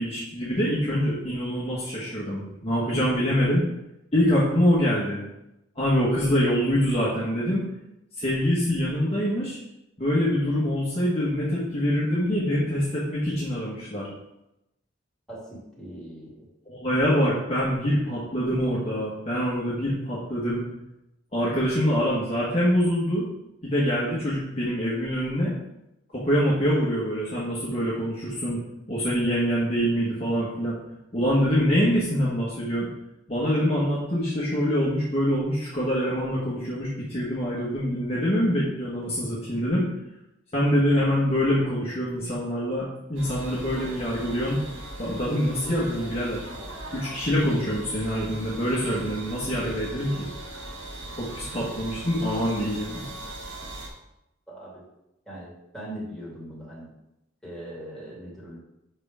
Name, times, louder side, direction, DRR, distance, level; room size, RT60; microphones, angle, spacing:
voice 1, 0.0-3.6 4.1-5.2 5.7-7.7 8.2-9.6 10.0-14.1 16.7-20.6 21.3-23.3 23.6-25.5 26.1-28.6 28.9-30.7 31.1-32.9 33.3-39.9 40.5-44.6 45.0-46.5 46.9-50.3 51.2-53.0, equal, 30° left, -7 dB, 1.5 m, -25 dB
voice 2, 15.3-16.5 54.5-54.8 55.3-56.9 57.4-58.6, right 1 dB, 5° left, -7 dB, 2.8 m, -40 dB
sound 1, 43.2-53.9, right 1 dB, 75° right, 1.8 m, -39 dB
8.0 x 5.5 x 3.7 m, 0.89 s
head